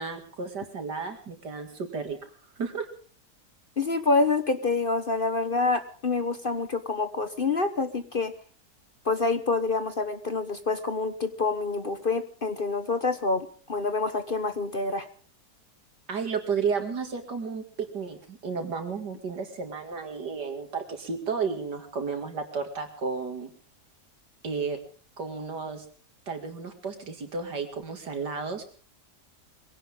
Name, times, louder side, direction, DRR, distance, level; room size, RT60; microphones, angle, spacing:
voice 1, 0.0-2.2 2.6-2.9 16.1-23.5 24.4-24.8 25.2-25.8 26.3-28.7, right 5 dB, 80° right, 5 dB, 3.1 m, -32 dB
voice 2, 3.8-8.3 9.0-15.1, left 3 dB, 40° left, 10 dB, 1.0 m, -27 dB
22.5 x 17.0 x 3.7 m, 0.42 s
omnidirectional pair, 1.8 m